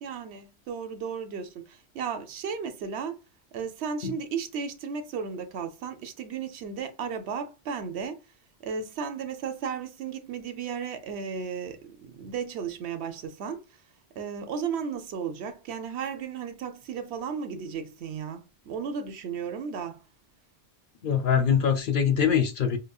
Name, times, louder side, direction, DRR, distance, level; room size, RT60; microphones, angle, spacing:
voice 1, 0.0-3.2 3.5-8.2 8.6-13.6 14.2-20.0, right 6 dB, 80° right, 0.9 m, -34 dB
voice 2, 21.0-22.8, left 7 dB, 60° left, 0.7 m, -23 dB
4.9 x 2.1 x 2.3 m
omnidirectional pair, 1.1 m